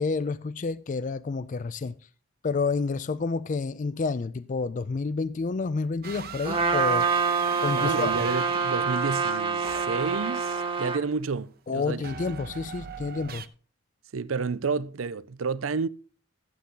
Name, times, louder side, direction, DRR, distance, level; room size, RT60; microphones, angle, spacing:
voice 1, 0.0-2.0 2.4-7.1 7.6-8.3 11.7-13.5, left 4 dB, 40° left, 0.4 m, -29 dB
sound 1, 6.0-11.2 12.0-13.5, right 6 dB, 50° right, 0.7 m, -41 dB
Trumpet, 6.4-11.0, right 5 dB, 25° right, 1.1 m, -26 dB
voice 2, 7.7-12.0 14.1-15.9, right 4 dB, 90° right, 0.6 m, -30 dB
14.0 x 8.2 x 3.8 m
head